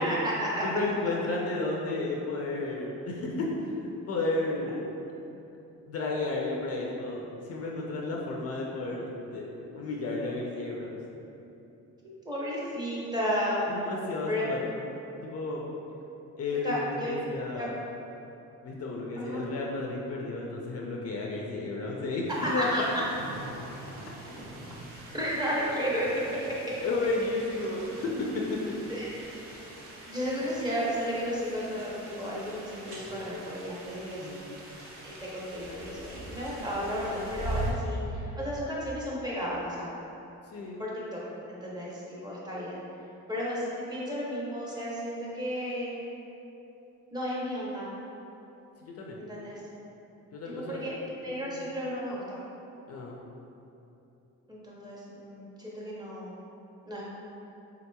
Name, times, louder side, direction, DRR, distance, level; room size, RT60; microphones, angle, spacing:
voice 1, 0.0-0.6 12.0-13.7 14.3-14.4 16.6-17.1 17.6-17.7 19.2-19.4 22.4-22.8 25.1-26.2 28.9-29.3 30.1-34.3 35.0-39.9 40.8-41.2 41.5-42.8 43.3-45.9 47.1-47.9 49.2-49.6 50.5-50.9 51.2-52.4 54.5-56.4 56.9-57.1, equal, 15° right, -6 dB, 0.7 m, -33 dB
voice 2, 0.6-4.8 5.9-9.5 9.7-11.0 13.7-14.8 15.2-15.6 16.4-17.7 18.6-22.7 26.8-28.7 34.2-34.5 40.5-40.8 48.9-49.2 50.3-50.9 51.2-51.6 52.9-53.2, left 2 dB, 50° left, -2 dB, 0.4 m, -32 dB
sound 1, 22.3-37.7, right 1 dB, 75° right, 0.7 m, -42 dB
3.7 x 2.9 x 2.2 m, 2.9 s
cardioid pair, 110°, 31 cm